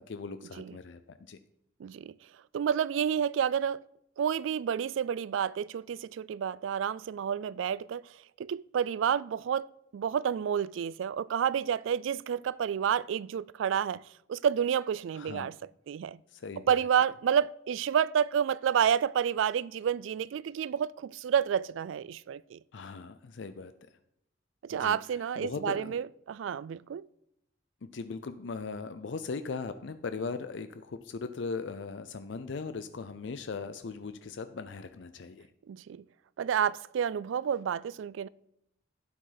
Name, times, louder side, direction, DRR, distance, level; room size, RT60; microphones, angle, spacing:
voice 1, 0.0-1.4 15.1-15.5 16.3-16.8 22.7-23.7 24.7-25.0 25.4-25.9 27.8-35.5, left 4 dB, 65° left, 0.5 m, -39 dB
voice 2, 1.8-2.1 2.5-3.8 4.2-8.1 8.4-9.7 9.9-14.0 14.3-15.5 15.9-16.2 16.7-22.6 24.6-27.1 35.7-36.0 36.4-38.3, right 8 dB, 75° right, 0.3 m, -29 dB
12.0 x 9.1 x 4.0 m
head